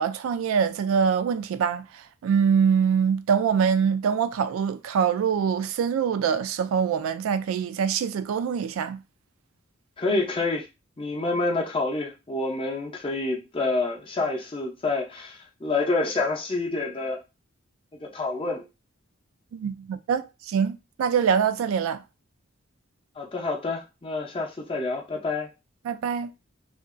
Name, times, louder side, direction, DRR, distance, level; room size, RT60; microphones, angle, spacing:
voice 1, 0.0-9.0 19.5-22.0 25.9-26.3, right 7 dB, 85° right, 0.3 m, -24 dB
voice 2, 10.0-10.7 11.0-17.2 18.0-18.6 23.2-25.5, left 3 dB, 25° left, 0.6 m, -28 dB
2.8 x 2.5 x 2.4 m
head